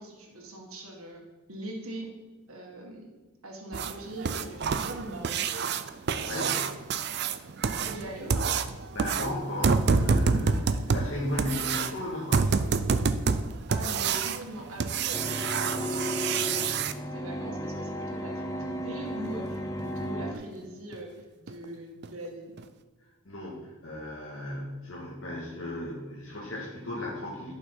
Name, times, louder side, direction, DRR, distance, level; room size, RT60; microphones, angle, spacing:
voice 1, 0.0-2.1 2.5-3.1 3.4-5.6 7.8-8.6 13.5-22.5, right 1 dB, 80° right, 0 dB, 1.8 m, -42 dB
sound 1, 3.7-16.9 19.2-19.3 19.8-19.9 20.3-20.4 20.9-21.0 21.5-21.6 22.0-22.1 22.6-22.7, right 5 dB, 50° right, 0.4 m, -28 dB
voice 2, 6.2-6.7 8.9-12.6 23.3-27.5, left 1 dB, 60° left, -6 dB, 1.7 m, -35 dB
sound 2, 15.1-20.3, equal, 15° left, 0.5 m, -34 dB
11.5 x 5.7 x 4.5 m, 1.3 s
head